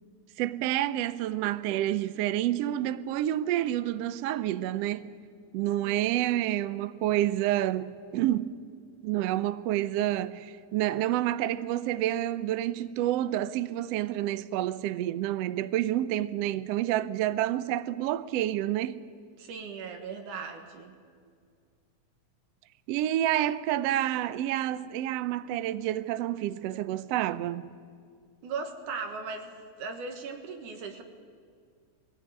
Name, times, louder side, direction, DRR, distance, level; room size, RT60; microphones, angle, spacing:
voice 1, 0.4-5.1 5.5-8.5 9.0-19.0 22.9-27.7, right 13 dB, 90° right, 1.4 m, -29 dB
voice 2, 5.8-6.1 19.4-20.9 28.4-29.5 29.8-31.0, right 5 dB, 75° right, 2.9 m, -38 dB
21.0 x 16.5 x 9.4 m
omnidirectional pair, 3.7 m